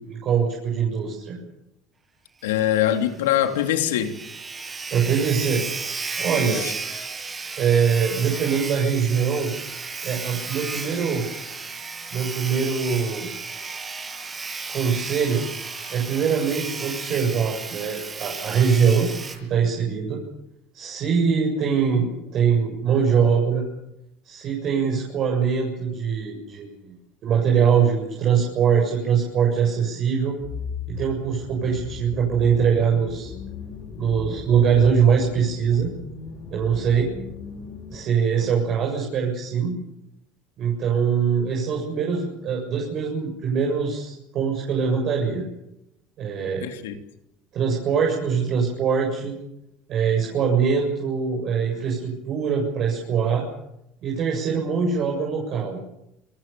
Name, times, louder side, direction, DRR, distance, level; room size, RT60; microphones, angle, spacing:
voice 1, 0.0-1.4 4.9-5.6 6.2-6.6 7.6-9.5 10.0-11.2 12.1-13.3 14.7-15.5 15.9-19.1 19.5-20.2 20.7-23.6 24.2-26.9 27.2-30.4 30.9-33.3 34.0-35.9 36.5-37.1 37.9-39.8 40.6-45.4 46.2-46.6 47.5-49.3 49.9-53.4 54.0-55.8, right 6 dB, 55° right, 0 dB, 7.3 m, -22 dB
voice 2, 2.4-4.1 6.4-6.7 46.6-47.0, left 11 dB, 90° left, 6 dB, 3.0 m, -23 dB
Sawing, 2.5-2.6 2.9-3.0 3.4-3.5 3.6-19.4, right 4 dB, 25° right, 7.8 m, -33 dB
sound 1, 30.4-38.0, left 6 dB, 50° left, 6.0 m, -37 dB
28.5 x 21.0 x 7.0 m, 0.87 s
supercardioid pair, 90°, 0 cm